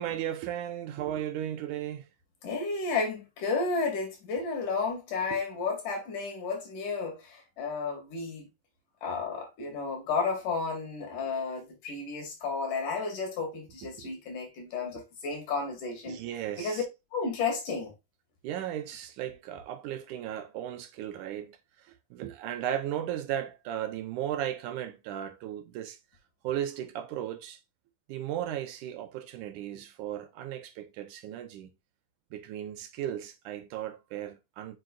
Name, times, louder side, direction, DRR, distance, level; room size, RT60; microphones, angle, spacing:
voice 1, 0.0-2.1 5.3-5.4 13.8-14.1 16.1-16.8 18.4-21.6 22.1-26.0 26.4-27.6 28.1-31.7 32.3-34.8, right 11 dB, 85° right, 2.5 m, -36 dB
voice 2, 2.4-8.5 9.0-16.2 16.6-16.8 17.1-17.9, left 4 dB, 90° left, 3.7 m, -32 dB
7.8 x 6.2 x 2.5 m
omnidirectional pair, 3.5 m